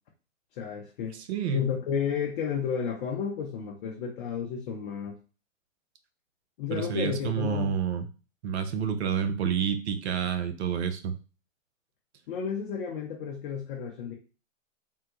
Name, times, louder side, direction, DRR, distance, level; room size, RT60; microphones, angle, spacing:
voice 1, 0.6-1.2 1.5-5.2 6.6-7.7 12.3-14.1, left 7 dB, 40° left, -1 dB, 0.6 m, -32 dB
voice 2, 1.1-1.6 6.7-8.1 8.4-11.2, right 7 dB, 55° right, 8 dB, 0.6 m, -29 dB
3.6 x 2.2 x 2.9 m, 0.34 s
hypercardioid pair, 125°, 40 cm